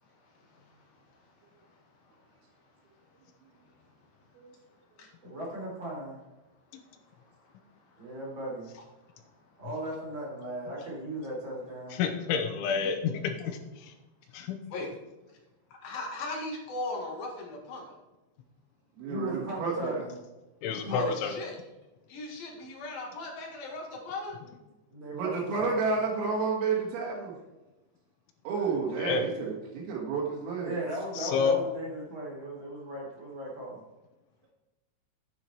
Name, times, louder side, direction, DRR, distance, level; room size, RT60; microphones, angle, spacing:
voice 1, 0.0-3.2 3.5-4.1 5.0-5.1 6.7-8.2 8.8-9.6 10.8-10.9 14.7-14.9 15.7-18.0 20.9-21.6 22.1-24.4 28.5-29.1, left 2 dB, 60° left, 0 dB, 3.0 m, -41 dB
voice 2, 5.2-6.2 8.0-8.8 9.6-12.0 19.1-20.2 20.7-21.1 24.9-25.8 30.6-33.8, right 1 dB, 25° right, -4 dB, 3.3 m, -37 dB
voice 3, 11.9-13.9 14.3-14.6 20.6-21.3 29.0-29.3 31.2-31.6, left 6 dB, 80° left, 6 dB, 3.2 m, -29 dB
voice 4, 19.0-20.0 25.1-27.3 28.4-30.7, right 4 dB, 80° right, -3 dB, 4.7 m, -30 dB
10.0 x 8.8 x 4.5 m, 1.1 s
omnidirectional pair, 5.8 m